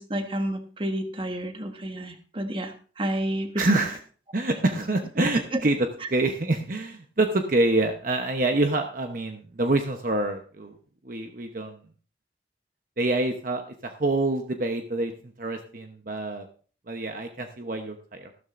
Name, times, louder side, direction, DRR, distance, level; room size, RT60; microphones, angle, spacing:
voice 1, 0.0-4.0 5.2-5.6 6.0-6.1, right 1 dB, 30° right, 6 dB, 1.3 m, -31 dB
voice 2, 3.6-4.0 4.3-10.7 11.0-11.8 13.0-16.5 16.9-18.3, right 2 dB, 50° right, 5 dB, 1.0 m, -26 dB
14.5 x 13.0 x 2.6 m, 0.41 s
head